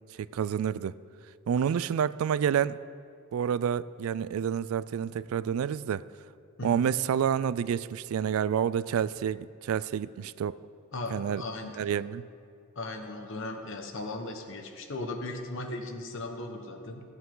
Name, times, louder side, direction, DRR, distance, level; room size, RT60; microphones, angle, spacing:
voice 1, 0.3-1.0 1.5-2.8 3.3-6.0 6.6-10.6 11.1-11.4 11.8-12.3, right 8 dB, 75° right, 18 dB, 0.3 m, -28 dB
voice 2, 10.9-11.7 12.7-17.0, left 2 dB, 60° left, 4 dB, 1.1 m, -37 dB
16.5 x 8.0 x 3.8 m, 2.4 s
head